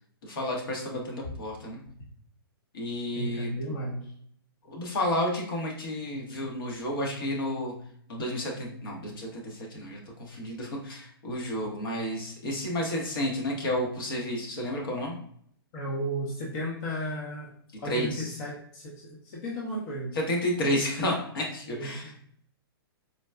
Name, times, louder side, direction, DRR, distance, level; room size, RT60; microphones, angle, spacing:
voice 1, 0.2-1.8 2.7-3.6 4.7-7.7 8.1-15.1 17.8-18.3 20.1-22.2, left 1 dB, 60° left, -1 dB, 1.0 m, -31 dB
voice 2, 3.2-4.1 15.7-17.5 17.8-20.2 21.7-22.1, equal, 40° left, -4 dB, 0.7 m, -34 dB
3.9 x 2.2 x 2.2 m, 0.64 s
hypercardioid pair, 145°, 13 cm